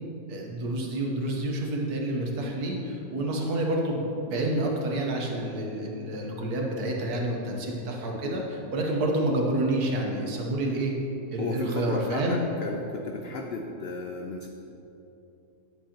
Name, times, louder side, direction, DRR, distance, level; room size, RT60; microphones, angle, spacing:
voice 1, 0.3-10.9 11.3-12.5, right 1 dB, 80° right, 0 dB, 1.6 m, -28 dB
voice 2, 11.4-14.5, left 3 dB, 75° left, 2 dB, 0.5 m, -34 dB
9.6 x 7.9 x 2.9 m, 3.0 s
omnidirectional pair, 1.6 m